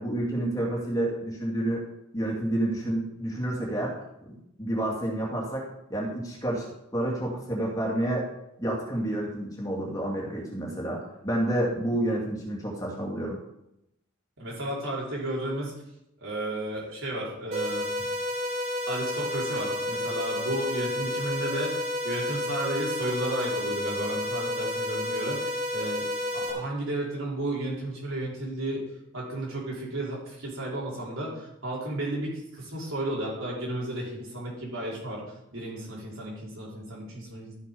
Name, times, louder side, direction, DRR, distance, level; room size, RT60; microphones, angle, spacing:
voice 1, 0.0-1.9 2.1-3.9 4.6-6.7 6.9-8.3 8.6-13.4, right 1 dB, 15° left, -3 dB, 2.4 m, -29 dB
voice 2, 14.4-15.7 16.2-18.1 18.9-26.1 26.3-28.8 29.1-35.2 35.5-37.5, right 1 dB, 65° right, -4 dB, 4.3 m, -33 dB
sound 1, 17.5-26.5, left 1 dB, 35° right, 3.6 m, -30 dB
12.5 x 6.8 x 5.4 m, 0.84 s
head